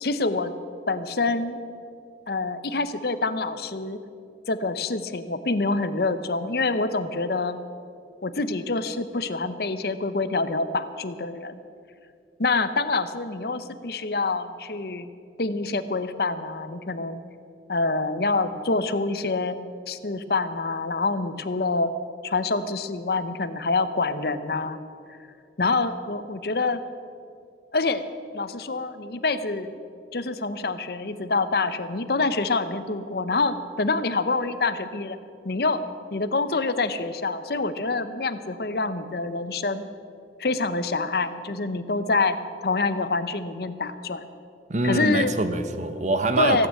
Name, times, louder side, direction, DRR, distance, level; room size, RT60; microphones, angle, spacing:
voice 1, 0.0-0.5 0.9-1.6 2.3-4.0 4.5-7.6 8.2-11.6 12.4-15.1 15.4-17.2 17.7-19.6 19.9-21.9 22.2-24.8 25.1-25.2 25.6-26.8 27.7-28.0 28.3-29.7 30.1-35.2 35.4-35.9 36.1-39.9 40.4-42.4 42.6-44.2 44.8-45.4 46.4-46.7, left 3 dB, 55° left, 12 dB, 0.8 m, -26 dB
voice 2, 44.7-46.7, right 2 dB, 40° right, 9 dB, 0.9 m, -24 dB
16.5 x 8.9 x 8.3 m, 2.4 s
head